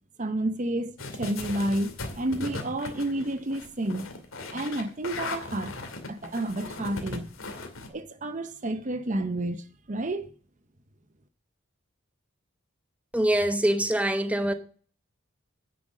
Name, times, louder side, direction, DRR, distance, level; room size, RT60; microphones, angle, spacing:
voice 1, 0.2-4.1 4.5-5.7 6.1-7.3 7.9-10.3, right 1 dB, 40° right, 0.8 m, -30 dB
sound 1, 1.0-7.9, left 3 dB, 80° left, 2.4 m, -38 dB
voice 2, 13.1-14.5, right 1 dB, 5° right, 1.0 m, -24 dB
10.0 x 7.9 x 6.3 m
head